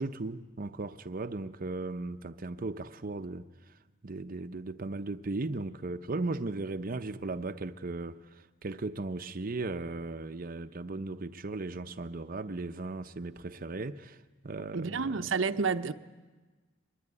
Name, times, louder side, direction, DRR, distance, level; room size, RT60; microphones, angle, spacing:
voice 1, 0.0-15.3, right 3 dB, 45° right, 0.7 m, -37 dB
voice 2, 14.7-15.9, right 5 dB, 75° right, 0.8 m, -29 dB
23.0 x 21.5 x 9.7 m
head